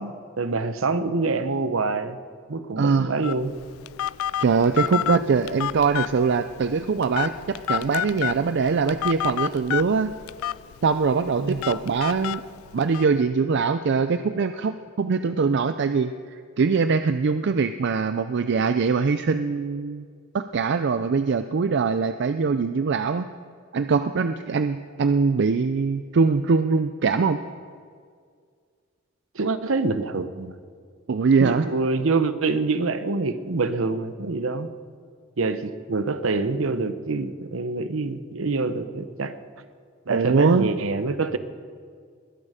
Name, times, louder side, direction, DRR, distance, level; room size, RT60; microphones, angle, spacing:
voice 1, 0.0-2.2 2.5-3.5 11.4-11.6 29.3-30.5 31.4-34.7 35.4-39.3 40.1-41.4, right 3 dB, 75° right, 11 dB, 0.8 m, -26 dB
voice 2, 2.8-3.1 4.4-10.1 10.8-12.4 12.7-20.0 20.3-23.3 23.7-27.4 31.1-31.7 40.1-40.7, right 5 dB, 55° right, 10 dB, 0.4 m, -22 dB
Telephone, 3.2-13.0, left 10 dB, 90° left, 0.3 m, -31 dB
21.0 x 10.5 x 5.0 m, 2.1 s
head